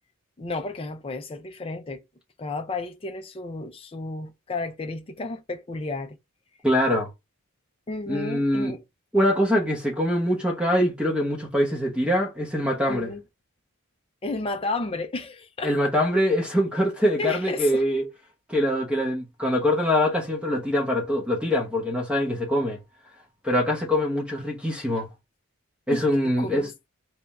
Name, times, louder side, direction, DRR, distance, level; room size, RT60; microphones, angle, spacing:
voice 1, 0.4-2.0 2.4-6.2 7.9-8.8 12.9-13.2 14.2-15.9 17.2-17.8 25.9-26.0 26.4-26.7, left 3 dB, 25° left, 0.4 m, -32 dB
voice 2, 6.6-7.1 8.1-8.7 9.1-13.1 15.6-18.0 18.5-22.8 23.4-25.1 25.9-26.7, left 1 dB, 5° right, 0.8 m, -23 dB
3.4 x 2.3 x 4.0 m
head